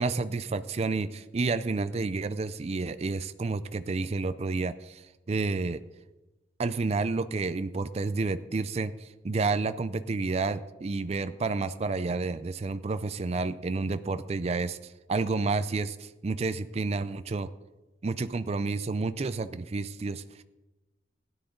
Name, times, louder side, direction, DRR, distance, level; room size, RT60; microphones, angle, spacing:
voice 1, 0.0-5.8 6.6-17.5 18.0-20.4, right 3 dB, 35° right, 12 dB, 0.4 m, -30 dB
17.0 x 10.0 x 3.8 m, 1.1 s
head